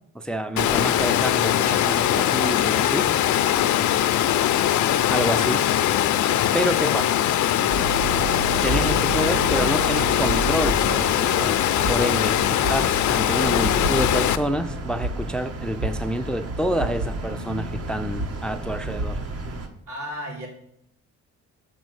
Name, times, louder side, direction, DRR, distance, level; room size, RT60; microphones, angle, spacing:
voice 1, 0.1-3.1 5.1-5.6 6.5-7.1 8.6-19.2, equal, 5° left, 9 dB, 0.4 m, -28 dB
Water, 0.6-14.4, left 11 dB, 70° left, 0.6 m, -21 dB
voice 2, 6.8-7.3 13.4-13.9 19.9-20.5, equal, 75° right, -3 dB, 3.6 m, -35 dB
sound 1, 7.7-19.7, right 2 dB, 50° right, 1.3 m, -31 dB
6.6 x 5.3 x 6.3 m, 0.71 s
cardioid pair, 90°, 30 cm